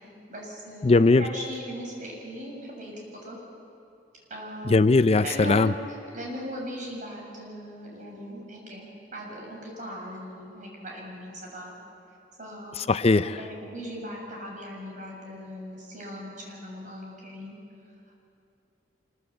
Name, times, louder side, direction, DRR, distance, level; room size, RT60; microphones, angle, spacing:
voice 1, 0.0-3.4 4.3-4.8 5.2-11.7 12.4-12.9 13.4-17.6, equal, 50° right, -1 dB, 7.3 m, -39 dB
voice 2, 0.8-1.2 4.7-5.7 12.8-13.4, left 3 dB, 35° left, 13 dB, 0.5 m, -19 dB
25.5 x 22.0 x 8.5 m, 2.8 s
head